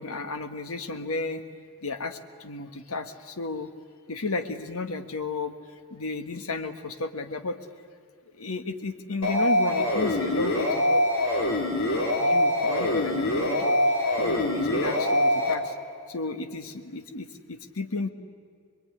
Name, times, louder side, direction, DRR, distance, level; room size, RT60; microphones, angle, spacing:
voice 1, 0.0-1.4 1.8-3.7 4.1-5.6 5.9-7.6 8.3-11.0 11.4-11.6 12.2-15.7 16.1-18.1, left 3 dB, 90° left, 8 dB, 1.6 m, -33 dB
sound 1, 9.2-15.5, left 1 dB, 75° left, 3.2 m, -24 dB
25.5 x 21.5 x 9.8 m, 2.1 s
head